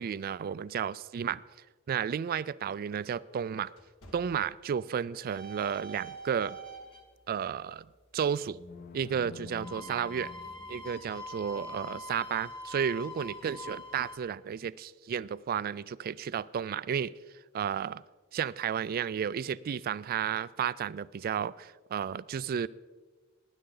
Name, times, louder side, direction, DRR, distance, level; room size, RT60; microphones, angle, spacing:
voice 1, 0.0-1.4 1.9-3.7 4.1-6.6 7.3-7.8 8.1-8.6 8.9-10.3 10.7-17.1 17.5-18.0 18.3-22.7, right 8 dB, 45° right, 19 dB, 0.3 m, -32 dB
sound 1, 1.8-5.2 5.6-5.9 6.5-6.8, equal, 70° left, 1.9 m, -58 dB
sound 2, 5.3-7.0 9.5-14.2, left 1 dB, 25° left, 1.5 m, -44 dB
sound 3, 8.4-11.4, left 3 dB, 45° left, 0.6 m, -49 dB
19.5 x 9.9 x 3.9 m, 1.4 s
head